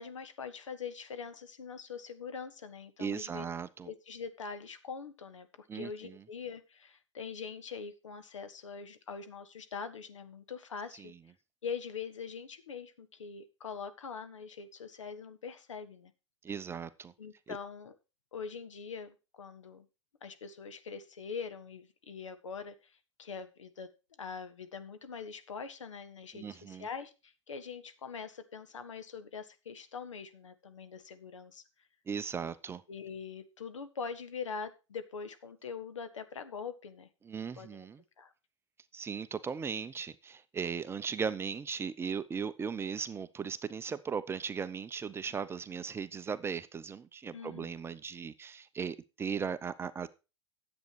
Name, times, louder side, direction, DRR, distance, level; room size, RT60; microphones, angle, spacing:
voice 1, 0.0-3.4 3.8-11.1 11.6-16.1 17.2-17.9 18.3-19.9 20.2-23.9 24.2-31.6 32.9-37.1 37.6-37.8 38.2-38.3 47.3-47.7, left 6 dB, 85° left, 10 dB, 1.5 m, -43 dB
voice 2, 3.0-3.9 5.7-6.2 11.0-11.2 16.4-17.1 17.5-17.6 26.3-26.9 32.1-32.8 37.2-38.0 38.9-50.1, right 6 dB, 15° right, 13 dB, 0.7 m, -37 dB
10.5 x 8.1 x 4.6 m, 0.30 s
hypercardioid pair, 115°, 15 cm